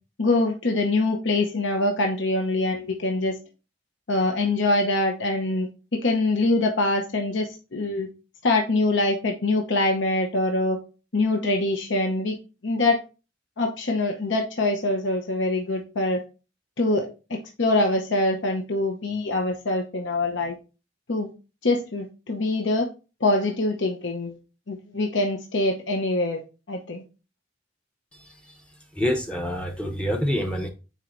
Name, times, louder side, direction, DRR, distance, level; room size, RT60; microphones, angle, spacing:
voice 1, 0.2-3.3 4.1-5.7 6.0-8.1 8.4-10.8 11.1-12.4 12.6-13.0 13.6-16.2 16.8-20.5 21.1-21.3 21.6-22.9 23.2-24.3 24.7-26.4 26.7-27.0, left 2 dB, 70° left, 3 dB, 0.8 m, -24 dB
voice 2, 29.0-30.7, equal, 5° left, 5 dB, 0.7 m, -26 dB
8.9 x 4.5 x 2.6 m, 0.32 s
head